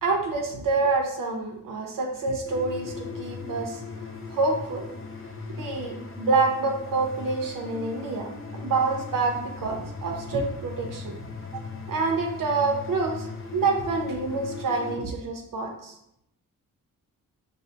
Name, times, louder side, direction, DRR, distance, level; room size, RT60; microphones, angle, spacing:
voice 1, 0.0-3.8 4.3-4.9 5.5-8.3 8.6-11.2 11.9-15.9, right 3 dB, 70° right, 2 dB, 0.7 m, -27 dB
sound 1, 2.4-15.0, left 5 dB, 40° left, 0.5 m, -38 dB
6.2 x 2.1 x 2.7 m, 0.78 s
wide cardioid pair, 165°, 34 cm